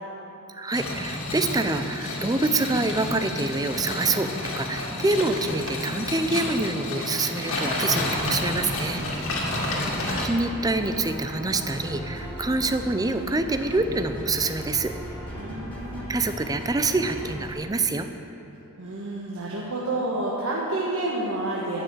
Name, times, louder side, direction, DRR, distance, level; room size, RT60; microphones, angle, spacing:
voice 1, 0.5-4.3 4.6-9.0 10.2-14.9 16.1-18.1, right 2 dB, 15° right, 8 dB, 0.5 m, -26 dB
sound 1, 0.7-10.2, left 2 dB, 65° left, 2.2 m, -30 dB
sound 2, 7.9-17.5, equal, 10° left, 2.8 m, -37 dB
voice 2, 9.3-10.2 15.3-16.1 18.8-21.8, right 2 dB, 65° right, -5 dB, 1.5 m, -30 dB
12.5 x 6.3 x 8.5 m, 3.0 s
head